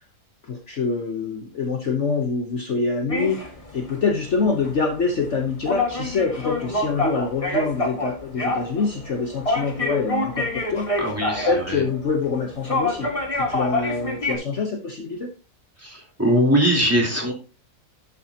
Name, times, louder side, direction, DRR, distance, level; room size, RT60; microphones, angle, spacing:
voice 1, 0.4-11.0 11.5-15.3, left 4 dB, 50° left, 3 dB, 1.3 m, -25 dB
sound 1, 3.1-14.3, left 2 dB, 20° left, 1.8 m, -27 dB
voice 2, 11.0-11.8 13.8-13.9 15.8-17.3, equal, 10° right, -1 dB, 3.5 m, -21 dB
11.5 x 8.5 x 2.9 m, 0.34 s
omnidirectional pair, 1.7 m